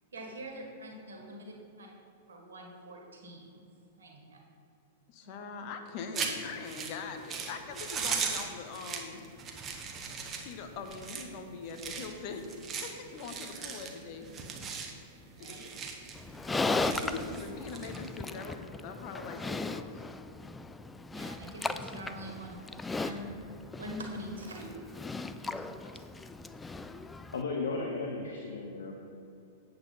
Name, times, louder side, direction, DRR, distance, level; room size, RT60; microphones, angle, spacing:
voice 1, 0.1-1.9 2.3-3.6 4.0-4.4 5.2-5.4 8.0-8.1 15.4-15.8 21.1-22.6 23.0-23.3 23.8-24.9 25.3-25.9, right 1 dB, 75° right, 1 dB, 1.7 m, -44 dB
voice 2, 5.1-9.2 10.4-14.3 15.4-15.7 16.5-20.0, left 5 dB, 45° left, 6 dB, 1.0 m, -42 dB
sound 1, 6.1-18.5, right 5 dB, 25° right, 1.1 m, -39 dB
Livestock farm animals working animals, 16.1-27.4, left 3 dB, 10° left, 0.3 m, -37 dB
voice 3, 27.3-29.0, left 3 dB, 70° left, 1 dB, 0.8 m, -35 dB
8.0 x 7.8 x 4.1 m, 2.7 s
figure-of-eight pair, 100°, 0 cm